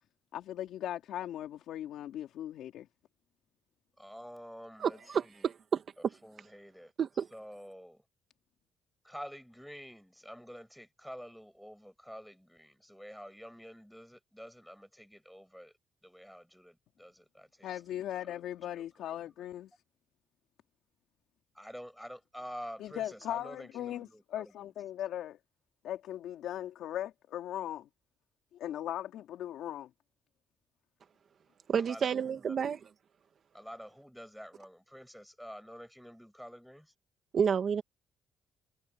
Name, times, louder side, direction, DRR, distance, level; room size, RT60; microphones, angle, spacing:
voice 1, 0.3-2.9 17.6-19.7 22.8-25.4 25.8-27.9 28.5-29.9, left 11 dB, 80° left, 3.0 m, -38 dB
voice 2, 4.0-5.5 6.2-6.9 7.3-8.0 9.0-15.7 16.0-17.7 18.6-18.8 21.5-24.7 31.8-32.6 33.5-36.9, equal, ahead, 7.5 m, -48 dB
voice 3, 4.8-5.8 7.0-7.3 31.7-32.8 37.3-37.8, right 7 dB, 55° right, 1.7 m, -30 dB
cardioid pair, 90°, 0 cm